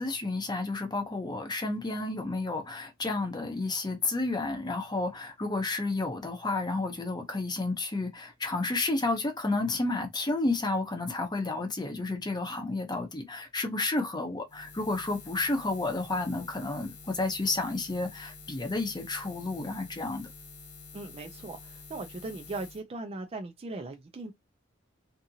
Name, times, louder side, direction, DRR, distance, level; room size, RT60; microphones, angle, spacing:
voice 1, 0.0-20.3, left 2 dB, 20° left, 0.7 m, -31 dB
Buzz, 14.5-22.8, left 4 dB, 60° left, 0.8 m, -48 dB
voice 2, 20.9-24.3, right 2 dB, 30° right, 0.4 m, -39 dB
2.7 x 2.5 x 2.7 m
head